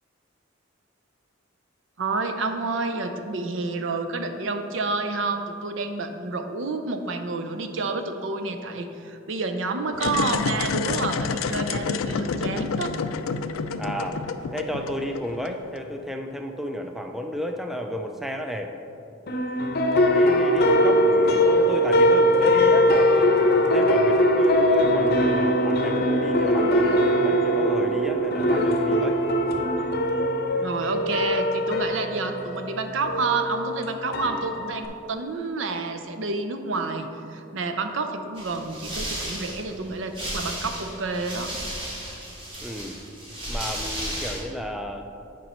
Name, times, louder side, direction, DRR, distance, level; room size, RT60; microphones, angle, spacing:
voice 1, 2.0-12.9 30.6-41.5, right 3 dB, 65° right, 7 dB, 0.6 m, -29 dB
sound 1, 9.9-15.8, left 5 dB, 85° left, 0.4 m, -28 dB
voice 2, 13.8-14.2 14.5-18.7 20.1-23.3 23.6-29.2 34.2-34.5 42.6-43.0 43.5-45.1, equal, ahead, 4 dB, 0.3 m, -32 dB
sound 2, 19.3-34.9, equal, 50° left, 0.7 m, -21 dB
sound 3, 38.4-44.4, right 1 dB, 25° right, 1.6 m, -34 dB
8.4 x 5.4 x 4.2 m, 2.7 s
head